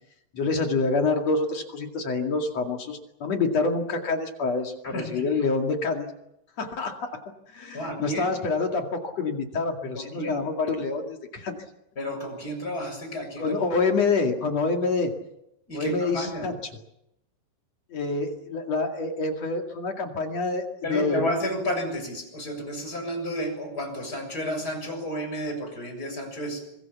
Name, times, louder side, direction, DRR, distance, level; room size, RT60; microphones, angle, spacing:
voice 1, 0.3-6.1 6.6-7.2 7.5-11.6 13.4-15.1 15.7-16.5 17.9-20.6 20.9-21.3, left 3 dB, 45° left, 3 dB, 2.7 m, -27 dB
voice 2, 4.8-5.3 7.7-8.3 9.9-10.3 12.0-13.6 15.7-16.5 20.8-26.9, equal, 20° left, 4 dB, 7.2 m, -31 dB
25.5 x 22.5 x 7.2 m, 0.85 s
omnidirectional pair, 5.2 m